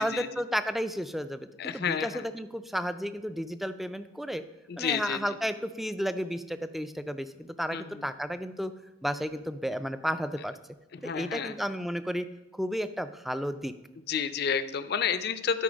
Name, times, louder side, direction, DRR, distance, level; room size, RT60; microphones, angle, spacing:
voice 1, 0.0-1.5 1.7-4.4 4.8-8.7 9.0-10.5 11.0-12.3 12.5-13.7, equal, ahead, 11 dB, 0.3 m, -32 dB
voice 2, 1.6-2.3 4.7-5.4 7.7-8.1 10.9-11.6 14.1-15.6, left 7 dB, 55° left, 13 dB, 0.5 m, -30 dB
12.0 x 4.7 x 5.1 m, 0.97 s
head